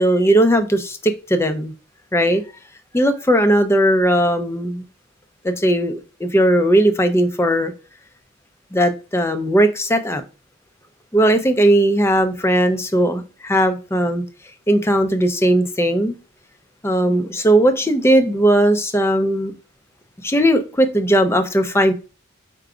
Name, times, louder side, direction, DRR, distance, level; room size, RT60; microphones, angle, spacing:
voice 1, 0.0-1.7 2.1-2.4 2.9-4.8 5.4-7.7 8.7-10.2 11.1-14.2 14.7-16.2 16.8-19.5 20.2-21.9, right 1 dB, 10° left, 0.5 m, -17 dB
4.8 x 2.3 x 4.8 m
head